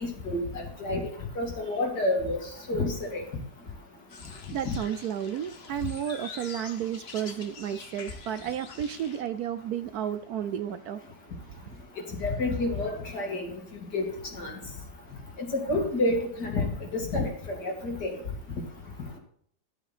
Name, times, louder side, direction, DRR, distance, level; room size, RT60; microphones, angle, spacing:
voice 1, 0.0-2.4 2.7-3.2 4.6-4.8 12.2-13.5 13.9-14.1 14.4-14.5 15.4-18.1, left 2 dB, 65° left, 1 dB, 2.9 m, -29 dB
sound 1, 4.1-9.2, left 5 dB, 45° left, 1.0 m, -46 dB
voice 2, 4.5-11.0, right 9 dB, 70° right, 11 dB, 1.0 m, -32 dB
13.0 x 8.1 x 4.1 m, 0.63 s
omnidirectional pair, 1.9 m